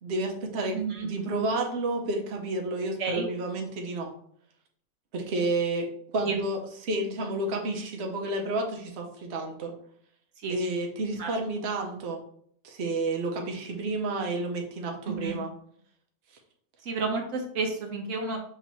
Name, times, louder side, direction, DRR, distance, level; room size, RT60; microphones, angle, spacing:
voice 1, 0.0-4.1 5.1-5.9 6.1-9.7 10.5-12.2 12.6-15.5, right 2 dB, 60° right, 2 dB, 1.0 m, -30 dB
voice 2, 0.7-1.1 3.0-3.3 6.2-6.4 10.4-10.6 11.2-11.3 15.2-15.4 16.9-18.4, right 4 dB, 75° right, 2 dB, 1.1 m, -30 dB
5.7 x 2.9 x 3.0 m, 0.63 s
omnidirectional pair, 1.4 m